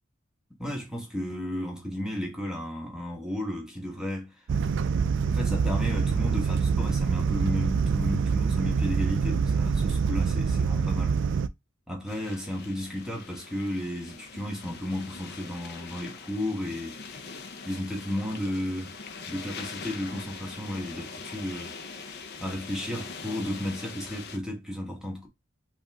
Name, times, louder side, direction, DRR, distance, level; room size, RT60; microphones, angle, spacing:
voice 1, 0.6-4.4 5.1-11.2 11.9-17.0 17.6-19.0 19.3-21.8 22.1-25.3, left 1 dB, 5° right, 1.3 m, -33 dB
sound 1, 4.5-11.5, right 5 dB, 65° right, 0.4 m, -25 dB
sound 2, 12.1-24.4, left 4 dB, 55° left, 0.7 m, -42 dB
5.3 x 2.6 x 3.4 m
head